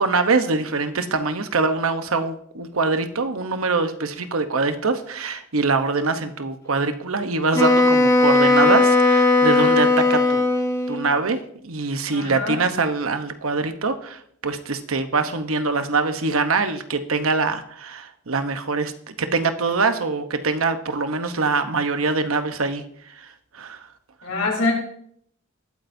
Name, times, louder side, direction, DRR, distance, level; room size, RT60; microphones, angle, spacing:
voice 1, 0.0-10.5 10.9-11.4 11.6-22.8 23.2-23.3 23.5-23.8, right 3 dB, 75° right, 8 dB, 1.0 m, -23 dB
Wind instrument woodwind instrument, 7.5-11.1, left 2 dB, 15° left, 1.5 m, -17 dB
voice 2, 12.1-12.6 24.2-24.7, left 2 dB, 80° left, 0 dB, 3.9 m, -24 dB
20.0 x 8.7 x 2.7 m, 0.67 s
head